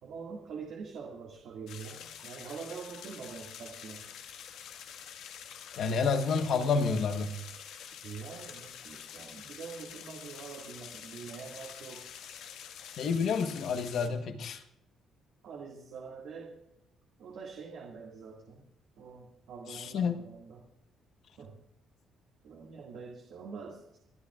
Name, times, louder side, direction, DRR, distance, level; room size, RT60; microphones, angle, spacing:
voice 1, 0.0-4.1 8.0-12.0 13.0-13.2 15.4-16.5 17.2-18.6 19.0-20.6 21.4-21.5 22.4-24.0, right 5 dB, 60° right, 1.9 m, -45 dB
sound 1, 1.7-14.1, left 9 dB, 90° left, 1.5 m, -47 dB
voice 2, 5.8-7.4 13.0-14.6 19.7-20.2, left 5 dB, 50° left, 1.1 m, -29 dB
30.0 x 12.5 x 2.4 m
cardioid pair, 175°, 0 cm